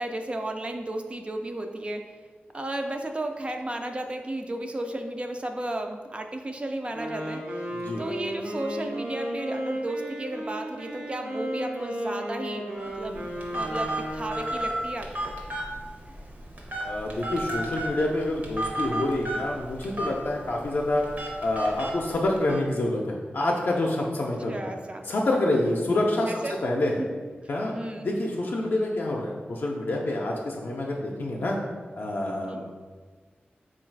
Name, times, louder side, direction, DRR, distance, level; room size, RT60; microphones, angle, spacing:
voice 1, 0.0-2.0 2.5-7.4 8.0-15.4 24.5-25.1 25.8-26.6 26.9-27.2 27.7-28.1 32.5-32.6, right 1 dB, 30° right, 4 dB, 0.3 m, -34 dB
Wind instrument woodwind instrument, 6.9-14.8, right 1 dB, 90° right, 0.7 m, -34 dB
voice 2, 7.7-8.0 16.8-21.0 21.4-24.8 25.1-26.3 26.6-27.0 27.5-27.7 28.0-31.6 31.9-32.7, left 1 dB, 65° left, -1 dB, 0.4 m, -27 dB
Telephone, 12.8-22.6, right 1 dB, 50° right, 0.8 m, -34 dB
3.9 x 2.3 x 4.5 m, 1.5 s
wide cardioid pair, 105°, 4 cm